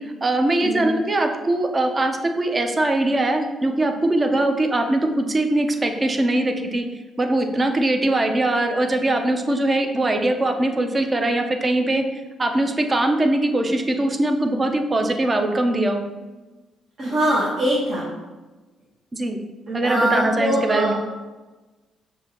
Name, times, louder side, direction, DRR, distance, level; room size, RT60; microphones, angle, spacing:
voice 1, 0.0-6.9 7.2-12.0 12.4-16.0 19.1-19.4 19.7-20.9, right 1 dB, 25° right, 5 dB, 0.5 m, -21 dB
voice 2, 17.0-18.1 19.7-20.9, right 1 dB, 55° right, -6 dB, 1.1 m, -22 dB
6.5 x 2.6 x 2.9 m, 1.2 s
cardioid pair, 90°, 0 cm